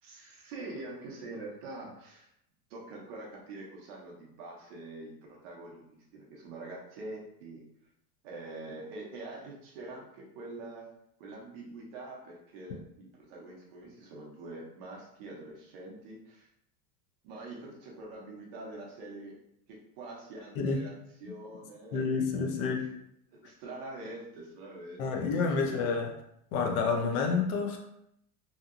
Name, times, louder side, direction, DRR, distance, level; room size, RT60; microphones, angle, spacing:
voice 1, 0.0-2.3 2.7-7.6 8.2-10.9 11.2-16.5 17.2-19.4 19.7-20.9 21.2-22.9 23.3-25.8, right 2 dB, 40° right, -2 dB, 0.5 m, -45 dB
voice 2, 21.9-22.8 25.0-26.1 26.5-27.8, left 4 dB, 60° left, 3 dB, 0.6 m, -29 dB
2.8 x 2.7 x 2.4 m, 0.76 s
supercardioid pair, 170°, 49 cm